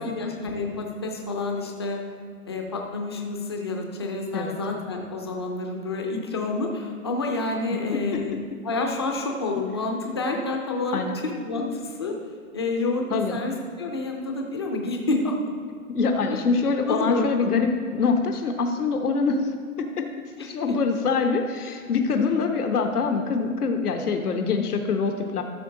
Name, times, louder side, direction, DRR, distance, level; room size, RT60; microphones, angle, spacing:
voice 1, 0.0-2.0 2.5-8.4 8.6-12.1 12.5-15.4 16.3-16.4 16.9-17.5 20.4-20.7, left 3 dB, 20° left, 2 dB, 0.4 m, -29 dB
voice 2, 15.9-19.4 19.8-20.1 20.4-25.4, left 4 dB, 85° left, 5 dB, 1.1 m, -24 dB
13.0 x 6.0 x 3.8 m, 2.1 s
hypercardioid pair, 155°, 44 cm